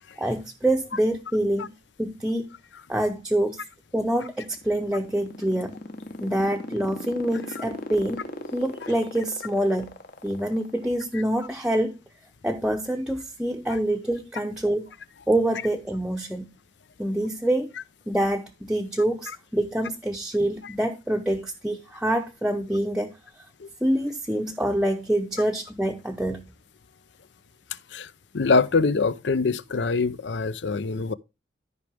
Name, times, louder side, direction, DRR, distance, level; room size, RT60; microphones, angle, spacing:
voice 1, 0.2-1.7 2.0-2.5 2.9-3.6 3.9-5.7 6.2-8.2 8.5-9.9 10.2-12.0 12.4-14.9 15.3-16.5 17.0-17.7 18.1-23.1 23.8-26.4, right 1 dB, 5° right, 0.7 m, -26 dB
sound 1, 4.4-11.0, left 2 dB, 55° left, 1.2 m, -36 dB
voice 2, 28.3-31.1, left 4 dB, 70° left, 0.6 m, -23 dB
13.5 x 5.1 x 3.4 m
head